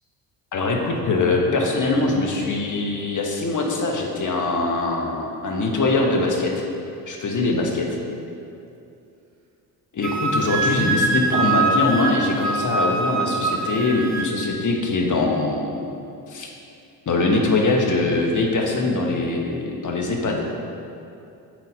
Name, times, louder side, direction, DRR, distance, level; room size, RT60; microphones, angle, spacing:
voice 1, 0.5-6.5 7.1-7.9 9.9-15.8 16.3-16.5 17.1-20.4, left 3 dB, 40° left, 1 dB, 1.3 m, -22 dB
Wind instrument woodwind instrument, 10.0-14.3, right 3 dB, 35° right, 1.3 m, -23 dB
7.8 x 4.2 x 5.1 m, 2.6 s
hypercardioid pair, 55°, 46 cm